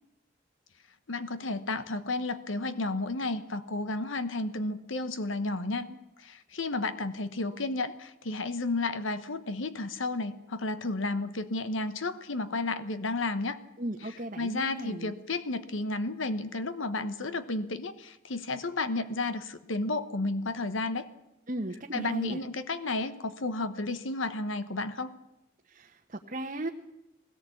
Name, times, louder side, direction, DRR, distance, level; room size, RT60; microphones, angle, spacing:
voice 1, 1.1-5.9 6.2-13.6 14.4-21.1 21.9-25.2, left 2 dB, 75° left, 11 dB, 1.2 m, -32 dB
voice 2, 13.8-15.2 21.5-22.4 25.7-26.7, right 1 dB, 40° right, 2 dB, 1.2 m, -36 dB
21.0 x 18.0 x 8.5 m, 0.93 s
head